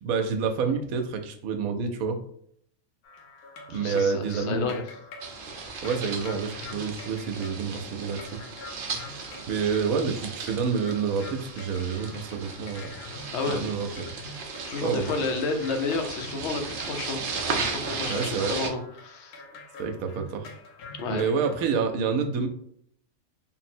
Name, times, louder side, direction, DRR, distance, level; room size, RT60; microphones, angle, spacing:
voice 1, 0.0-2.2 3.7-4.8 5.8-8.4 9.1-12.9 13.6-13.9 14.8-15.1 18.1-18.5 19.8-20.5 21.1-22.5, right 5 dB, 75° right, 6 dB, 1.0 m, -28 dB
sound 1, 3.0-21.7, left 3 dB, 85° left, 1.2 m, -46 dB
voice 2, 3.7-4.8 13.3-13.7 14.7-17.2 17.5-19.4 21.0-21.2, left 3 dB, 60° left, 5 dB, 0.8 m, -31 dB
sound 2, 5.2-18.7, right 4 dB, 60° right, 0.5 m, -36 dB
3.8 x 2.0 x 4.3 m, 0.67 s
omnidirectional pair, 1.5 m